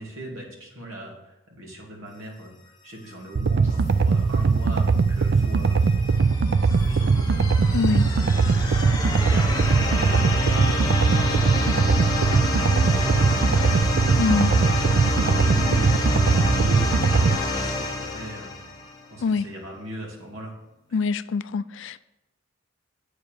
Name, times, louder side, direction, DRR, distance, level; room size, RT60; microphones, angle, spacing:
voice 1, 0.0-2.5 2.8-6.2 6.5-11.7 12.2-13.8 14.6-18.5 19.1-20.5 20.9-21.0, equal, 70° right, 2.6 m, -40 dB
sound 1, 3.3-17.4, right 4 dB, 55° right, 0.4 m, -21 dB
sound 2, 3.6-5.9 6.6-10.1, right 1 dB, 15° right, 1.9 m, -39 dB
sound 3, 5.2-19.1, left 2 dB, 20° left, 0.9 m, -28 dB
voice 2, 7.7-8.0 14.2-14.5 19.2-19.5 20.9-22.0, left 5 dB, 60° left, 0.3 m, -24 dB
8.1 x 5.0 x 7.5 m
head